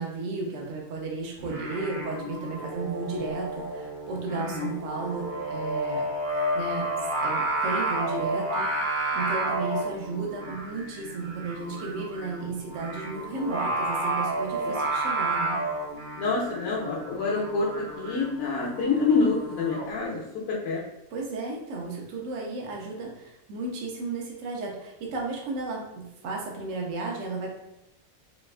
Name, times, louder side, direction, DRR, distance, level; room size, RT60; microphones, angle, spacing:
voice 1, 0.0-6.1 6.3-6.9 7.2-8.7 9.1-15.6 21.1-27.5, right 3 dB, 70° right, -1 dB, 1.0 m, -34 dB
Singing, 1.4-19.9, right 2 dB, 45° right, 0.7 m, -31 dB
voice 2, 4.3-4.7 14.7-14.8 16.2-17.7 18.0-20.2 20.5-20.8, left 4 dB, 80° left, -4 dB, 1.0 m, -27 dB
4.2 x 2.2 x 2.3 m, 0.91 s
omnidirectional pair, 1.5 m